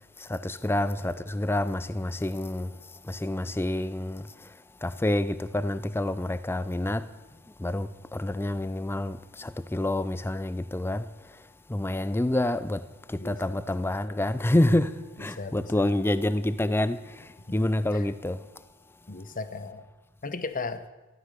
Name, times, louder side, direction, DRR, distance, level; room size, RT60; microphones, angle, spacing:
voice 1, 0.2-2.8 3.0-4.5 4.8-7.1 7.6-11.1 11.7-18.5, left 1 dB, 10° left, 0.5 m, -28 dB
voice 2, 13.1-13.7 15.3-16.0 17.5-17.6 17.9-18.1 19.1-19.8 20.2-20.8, left 3 dB, 40° left, 0.9 m, -36 dB
15.0 x 13.0 x 6.7 m
head